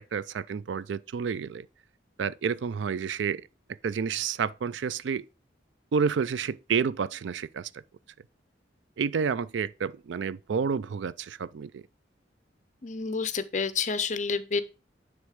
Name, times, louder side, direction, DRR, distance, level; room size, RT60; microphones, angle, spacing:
voice 1, 0.0-1.7 2.2-3.5 3.8-5.2 5.9-7.8 9.0-11.8, right 6 dB, 80° right, 0.4 m, -30 dB
voice 2, 12.8-14.6, left 5 dB, 40° left, 0.6 m, -29 dB
9.5 x 3.5 x 4.9 m
head